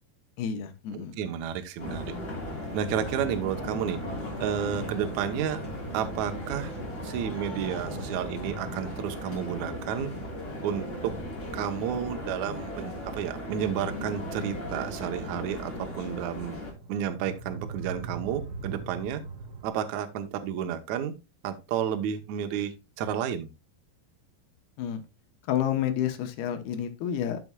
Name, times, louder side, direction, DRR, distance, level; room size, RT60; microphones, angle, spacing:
voice 1, 0.4-1.2 24.8-25.0 25.5-27.4, left 9 dB, 80° left, 7 dB, 2.8 m, -29 dB
voice 2, 0.9-2.2 2.7-4.0 4.4-5.6 5.9-6.7 7.0-10.1 10.6-11.1 11.5-16.6 16.9-19.2 19.6-21.1 21.4-23.5, right 9 dB, 80° right, 7 dB, 1.7 m, -31 dB
sound 1, 1.8-16.7, left 1 dB, 25° left, 3.0 m, -37 dB
sound 2, 2.5-19.7, right 4 dB, 45° right, 1.9 m, -44 dB
12.0 x 6.8 x 2.3 m, 0.26 s
omnidirectional pair, 4.5 m